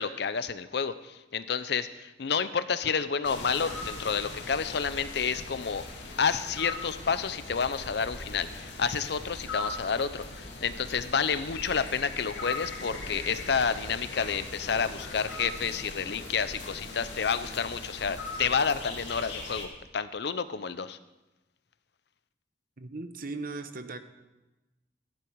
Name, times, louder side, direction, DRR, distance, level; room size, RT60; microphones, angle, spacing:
voice 1, 0.0-5.8 6.2-21.0, left 6 dB, 65° left, 0.6 m, -30 dB
sound 1, 3.2-19.7, left 3 dB, 90° left, 2.1 m, -40 dB
voice 2, 22.8-24.0, right 3 dB, 50° right, 0.9 m, -38 dB
13.0 x 11.5 x 4.7 m
head